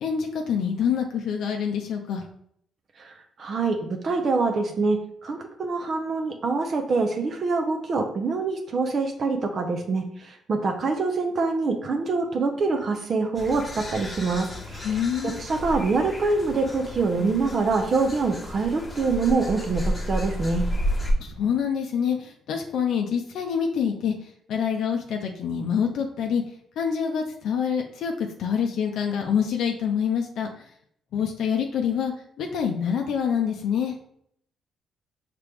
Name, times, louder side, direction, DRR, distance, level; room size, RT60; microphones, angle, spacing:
voice 1, 0.0-2.2 14.8-15.4 21.2-24.1 24.5-26.4 26.8-30.5 31.1-32.1 32.4-33.9, left 7 dB, 75° left, 3 dB, 0.5 m, -26 dB
voice 2, 3.4-20.7, right 3 dB, 50° right, 4 dB, 0.6 m, -25 dB
sound 1, 13.3-21.1, equal, 20° left, 1.1 m, -32 dB
4.8 x 2.9 x 3.4 m, 0.69 s
cardioid pair, 90°, 0 cm